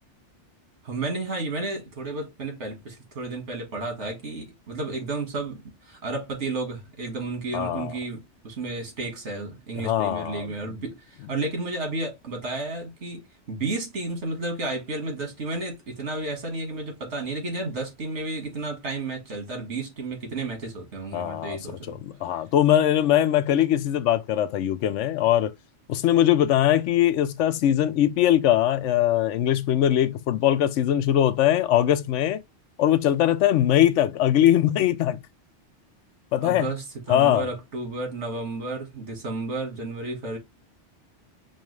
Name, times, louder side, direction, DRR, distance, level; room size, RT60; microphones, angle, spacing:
voice 1, 0.8-22.0 36.4-40.4, right 2 dB, 75° right, 1.9 m, -32 dB
voice 2, 7.5-7.9 9.8-10.5 21.1-25.5 25.9-32.4 32.8-35.2 36.3-36.7 37.1-37.5, left 11 dB, 85° left, 0.9 m, -21 dB
5.3 x 2.4 x 3.1 m
omnidirectional pair, 1.2 m